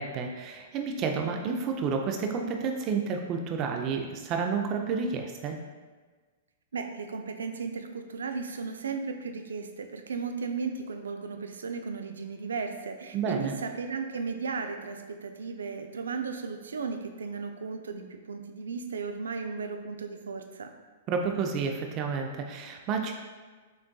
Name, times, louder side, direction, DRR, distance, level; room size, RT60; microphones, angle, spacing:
voice 1, 0.0-5.6 13.1-13.5 21.1-23.1, right 5 dB, 35° right, 3 dB, 0.5 m, -30 dB
voice 2, 6.7-20.7, right 5 dB, 90° right, 6 dB, 0.4 m, -35 dB
6.0 x 2.5 x 2.3 m, 1.4 s
hypercardioid pair, 130°, 0 cm